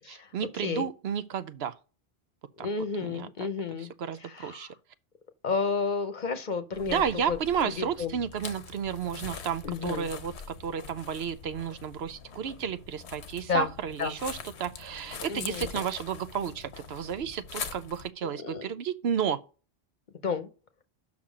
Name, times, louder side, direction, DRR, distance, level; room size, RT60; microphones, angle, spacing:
voice 1, 0.1-1.7 2.6-2.7 3.0-3.3 3.8-4.7 6.9-19.4, right 8 dB, 75° right, 0.9 m, -32 dB
voice 2, 2.6-3.9 4.2-4.7 5.4-7.4 7.8-8.1 9.6-10.1 13.5-13.7 14.0-14.1 15.3-15.7 18.2-18.7 20.2-20.5, left 5 dB, 50° left, 0.9 m, -31 dB
sound 1, 6.7-18.1, left 6 dB, 90° left, 1.1 m, -43 dB
7.2 x 5.9 x 5.0 m
omnidirectional pair, 1.1 m